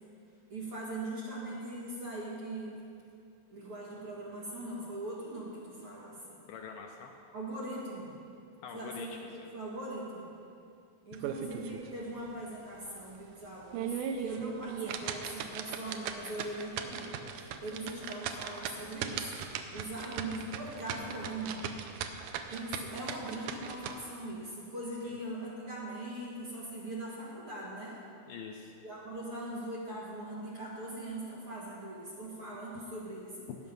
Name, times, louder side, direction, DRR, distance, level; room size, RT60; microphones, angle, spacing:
voice 1, 0.5-2.7 3.5-6.4 7.3-8.2 8.7-10.3 11.1-19.4 19.7-21.6 22.5-28.0 28.8-33.5, right 1 dB, 45° right, -6 dB, 2.2 m, -41 dB
voice 2, 6.5-7.1 8.6-9.2 20.0-20.1 25.0-25.2 28.3-28.7 33.5-33.6, left 7 dB, 80° left, 3 dB, 2.1 m, -45 dB
sound 1, 11.1-11.9 12.3-12.4 12.9-13.0 13.5-23.9, right 8 dB, 80° right, 1.9 m, -38 dB
18.0 x 6.2 x 5.3 m, 2.5 s
omnidirectional pair, 4.3 m